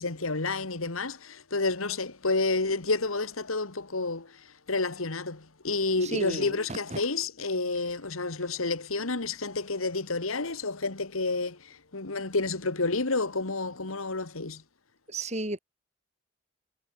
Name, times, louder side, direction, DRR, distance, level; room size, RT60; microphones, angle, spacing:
voice 1, 0.0-14.6, left 3 dB, 80° left, 1.9 m, -30 dB
voice 2, 6.0-7.0 15.1-15.6, right 2 dB, 30° right, 3.8 m, -34 dB
head